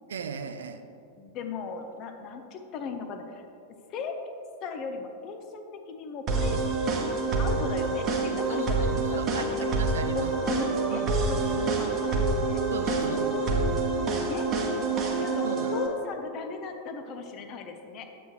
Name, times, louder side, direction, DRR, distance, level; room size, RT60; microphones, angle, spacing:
voice 1, 0.1-0.8 8.5-10.3 10.9-11.1 11.4-11.8 12.7-13.6 15.4-15.8, right 6 dB, 65° right, 8 dB, 0.5 m, -37 dB
voice 2, 1.2-3.5 3.9-4.3 4.6-6.6 7.4-9.6 10.1-12.6 13.1-14.5 15.2-18.1, left 4 dB, 35° left, 5 dB, 0.8 m, -37 dB
sound 1, 6.3-15.9, right 3 dB, 30° right, 1.2 m, -27 dB
9.7 x 8.0 x 3.2 m, 2.7 s
figure-of-eight pair, 90°, 0 cm